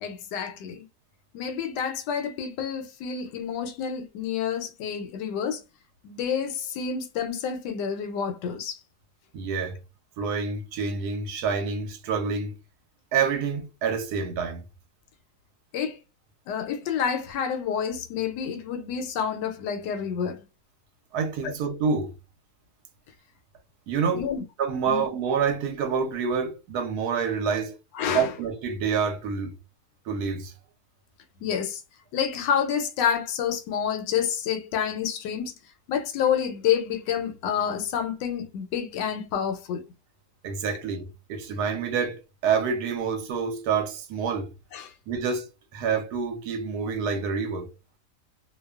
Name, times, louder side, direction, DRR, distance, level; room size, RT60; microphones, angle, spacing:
voice 1, 0.0-0.8 1.3-5.6 6.0-8.8 15.7-16.0 16.5-20.4 21.4-21.5 24.1-24.4 24.9-25.0 28.0-28.3 31.4-31.8 32.1-35.5 35.9-39.8 44.7-44.9, left 8 dB, 85° left, 1.2 m, -28 dB
voice 2, 9.3-9.8 10.2-12.5 13.1-14.6 21.1-22.1 23.9-24.3 24.6-27.8 28.1-29.5 30.1-30.5 40.4-44.5 45.1-47.7, right 6 dB, 75° right, 1.1 m, -27 dB
2.7 x 2.2 x 2.3 m
omnidirectional pair, 1.8 m